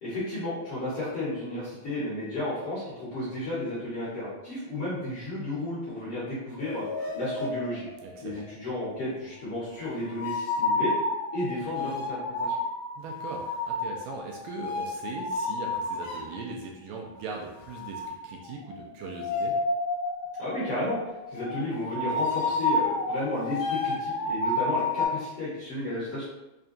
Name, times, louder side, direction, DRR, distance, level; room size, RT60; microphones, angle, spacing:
voice 1, 0.0-6.9 7.1-7.9 8.2-10.9 11.3-12.6 20.4-26.3, left 1 dB, 60° left, -11 dB, 1.6 m, -33 dB
sound 1, 6.6-8.1 10.0-16.4 17.7-25.1, left 2 dB, 85° left, 2.3 m, -30 dB
voice 2, 8.0-8.4 13.0-19.6, right 4 dB, 80° right, -1 dB, 2.1 m, -39 dB
5.6 x 2.2 x 2.6 m, 0.97 s
omnidirectional pair, 4.1 m